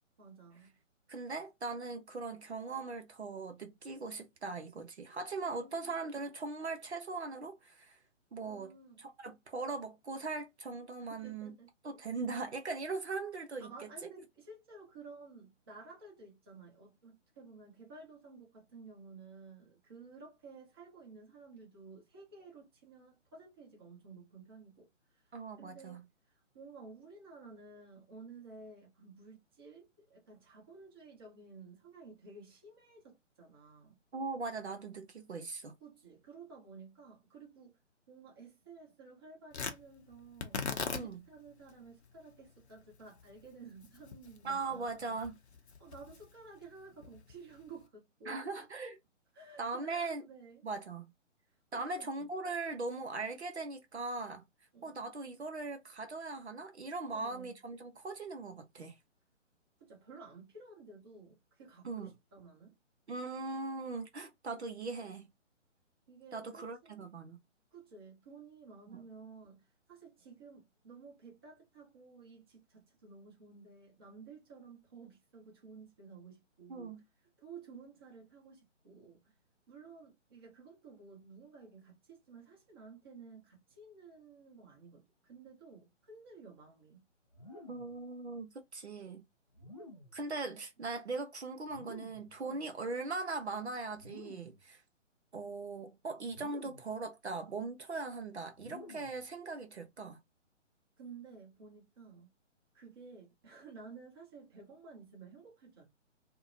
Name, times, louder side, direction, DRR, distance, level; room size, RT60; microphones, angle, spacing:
voice 1, 0.2-0.7 5.4-5.9 8.4-9.0 11.0-12.0 13.6-34.0 35.8-37.8 38.1-45.2 45.8-48.7 49.3-50.6 51.7-52.3 54.7-55.0 57.0-57.6 59.8-62.8 66.1-67.0 67.7-76.9 77.4-79.3 79.7-87.0 92.4-92.6 101.0-102.3 102.7-105.8, right 4 dB, 20° right, 0.8 m, -54 dB
voice 2, 1.1-8.0 8.3-8.7 9.0-11.5 11.8-13.7 14.0-14.1 25.3-26.0 34.1-35.7 40.9-41.2 44.4-45.3 48.3-49.0 49.6-50.2 50.6-51.0 51.7-54.4 54.8-59.0 61.8-62.1 63.1-65.3 66.3-67.4 68.9-69.0 76.7-77.0 87.7-89.2 90.1-94.8 95.3-100.2, right 3 dB, 60° right, 0.6 m, -40 dB
Tearing, 39.5-47.9, left 5 dB, 60° left, 0.6 m, -44 dB
sound 1, 87.3-88.0 89.5-90.3 91.6-92.4 93.9-94.6 96.3-97.0 98.5-99.3, left 2 dB, 30° left, 0.4 m, -52 dB
2.7 x 2.1 x 2.5 m
figure-of-eight pair, 140°, 37 cm